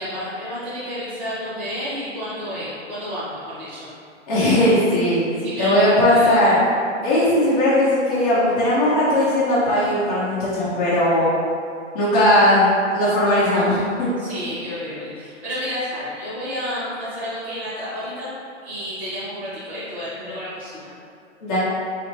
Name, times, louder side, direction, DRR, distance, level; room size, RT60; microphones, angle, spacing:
voice 1, 0.0-3.9 5.4-6.4 14.2-18.3 18.6-20.9, equal, 5° right, -12 dB, 0.9 m, -31 dB
voice 2, 4.3-5.3 5.6-6.6 7.0-11.3 11.9-12.7 12.9-14.1 21.4-21.6, left 1 dB, 30° left, -10 dB, 0.6 m, -18 dB
4.0 x 2.4 x 3.0 m, 2.4 s
hypercardioid pair, 160°, 37 cm